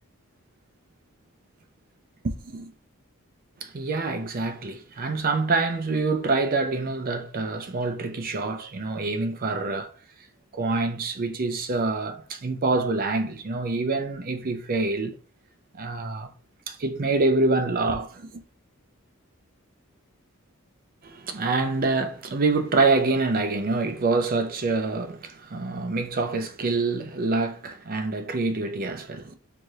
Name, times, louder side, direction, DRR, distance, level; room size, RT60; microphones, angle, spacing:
voice 1, 2.2-2.7 3.6-9.9 10.5-15.2 15.7-16.3 16.7-18.4 21.0-29.4, right 3 dB, 45° right, 0.5 m, -26 dB
4.7 x 2.5 x 2.7 m
head